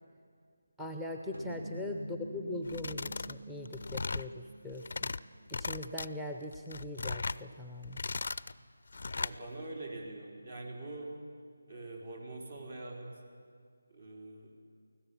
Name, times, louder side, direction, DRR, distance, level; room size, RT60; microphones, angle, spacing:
voice 1, 0.8-5.1 5.5-8.0, left 1 dB, 5° right, 3 dB, 0.7 m, -41 dB
sound 1, 1.3-5.9, right 1 dB, 85° right, 2.2 m, -46 dB
sound 2, 2.7-3.4 3.7-4.3 4.7-5.2 5.5-6.1 6.5-7.4 7.8-8.5 8.9-9.4, left 3 dB, 60° left, 0.4 m, -37 dB
voice 2, 9.2-11.1 11.7-13.1 13.9-14.5, right 2 dB, 55° right, 1 dB, 4.3 m, -44 dB
24.5 x 16.5 x 7.2 m, 2.1 s
figure-of-eight pair, 160°, 0 cm